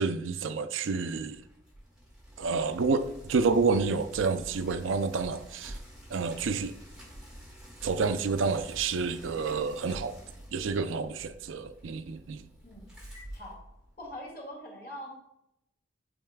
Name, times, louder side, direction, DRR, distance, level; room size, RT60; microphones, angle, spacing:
voice 1, 0.0-1.4 2.4-5.8 6.1-6.7 7.8-10.2 10.5-12.4, right 4 dB, 75° right, 0.4 m, -29 dB
Bicycle, 1.2-14.2, equal, 5° right, 2.1 m, -48 dB
voice 2, 14.0-15.2, left 1 dB, 50° left, 2.2 m, -42 dB
8.8 x 5.5 x 2.3 m
head